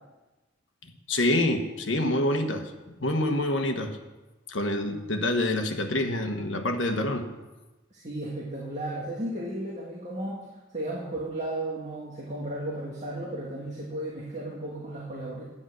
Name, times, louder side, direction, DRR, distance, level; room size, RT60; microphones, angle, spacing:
voice 1, 1.1-2.7 3.0-4.0 4.5-7.3, left 1 dB, 70° left, 5 dB, 1.2 m, -26 dB
voice 2, 7.9-10.4 10.7-15.4, right 1 dB, 35° right, -5 dB, 2.0 m, -34 dB
10.5 x 9.8 x 6.3 m, 1.1 s
head